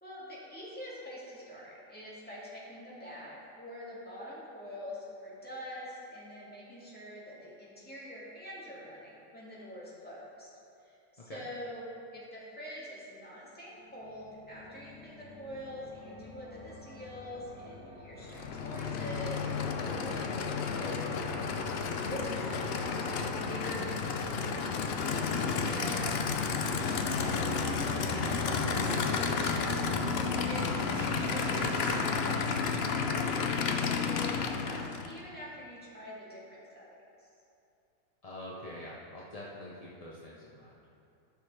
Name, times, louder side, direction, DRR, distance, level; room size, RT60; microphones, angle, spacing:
voice 1, 0.0-10.5 10.8-11.8 12.1-21.4 22.0-24.9 25.6-32.4 32.9-37.3, equal, 5° left, -8 dB, 2.1 m, -45 dB
sound 1, 13.7-26.5, left 2 dB, 55° left, 1.8 m, -46 dB
Aircraft / Idling, 18.2-35.2, left 5 dB, 85° left, 0.5 m, -32 dB
sound 2, 26.9-32.0, right 2 dB, 50° right, 1.3 m, -40 dB
voice 2, 38.2-40.8, left 1 dB, 35° left, -6 dB, 0.6 m, -45 dB
13.5 x 6.3 x 3.3 m, 2.7 s
omnidirectional pair, 1.7 m